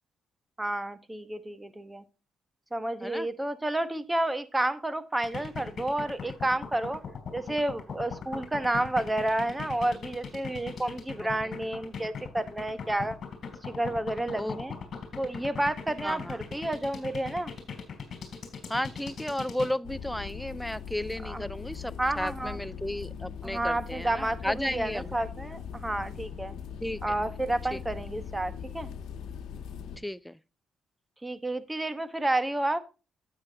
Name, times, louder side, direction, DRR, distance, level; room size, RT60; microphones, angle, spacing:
voice 1, 0.6-2.0 2.7-7.0 7.3-13.2 13.6-14.8 15.2-17.5 21.2-21.4 22.0-22.6 23.4-26.5 27.0-28.9 31.2-32.8, right 1 dB, 15° right, 1.0 m, -30 dB
sound 1, 5.2-19.7, left 6 dB, 50° left, 2.9 m, -39 dB
voice 2, 16.0-16.4 18.7-25.1 26.8-27.2 27.7-27.8 30.0-30.4, left 1 dB, 5° left, 0.4 m, -33 dB
sound 2, 19.8-30.0, left 7 dB, 80° left, 1.2 m, -40 dB
9.6 x 8.3 x 2.8 m
cardioid pair, 90°, 0 cm